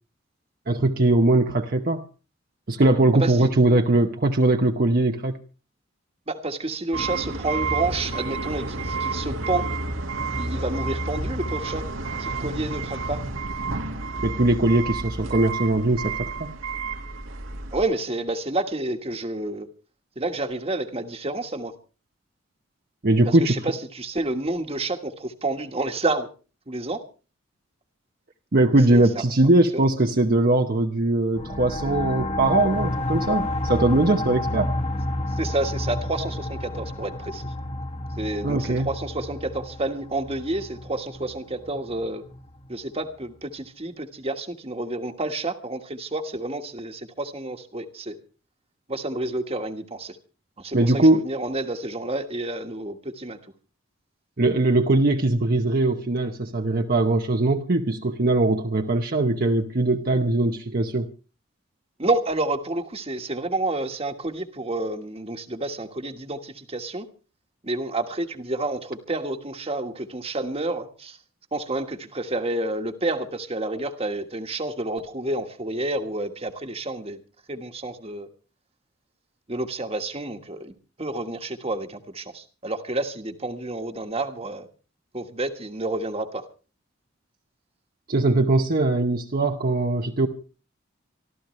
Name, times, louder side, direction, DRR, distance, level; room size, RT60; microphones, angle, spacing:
voice 1, 0.7-2.1 2.7-5.4 14.2-16.6 23.0-23.6 28.5-34.7 38.4-38.9 50.7-51.2 54.4-61.1 88.1-90.3, right 2 dB, 50° right, 3 dB, 0.9 m, -21 dB
voice 2, 3.1-3.5 6.3-9.7 10.4-11.8 12.2-13.2 17.7-19.7 20.1-21.7 23.2-26.3 26.7-27.0 28.9-29.2 29.7-29.8 35.3-37.5 38.2-42.2 42.7-48.2 48.9-50.2 50.6-53.4 62.0-67.1 67.6-71.2 71.5-77.2 77.5-78.3 79.5-84.7 85.1-86.4, right 2 dB, 30° right, 6 dB, 1.4 m, -29 dB
tractor back up beep, 6.9-17.8, right 3 dB, 80° right, 1.9 m, -30 dB
sound 1, 31.3-42.7, left 1 dB, 35° left, 1.6 m, -30 dB
25.0 x 13.5 x 3.2 m, 0.34 s
head